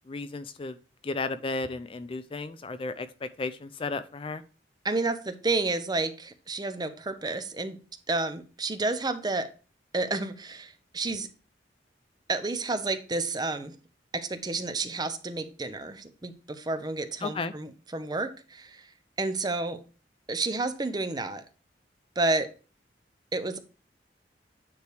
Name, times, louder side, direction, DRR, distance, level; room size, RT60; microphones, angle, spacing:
voice 1, 0.1-0.8 1.0-4.4 17.2-17.5, left 3 dB, 30° left, 11 dB, 0.4 m, -34 dB
voice 2, 4.8-7.8 8.1-9.5 9.9-11.3 12.3-13.7 14.1-18.9 19.2-19.8 20.3-21.4 22.2-22.5 23.3-23.6, right 3 dB, 20° right, 9 dB, 0.7 m, -30 dB
9.4 x 3.3 x 4.7 m, 0.36 s
head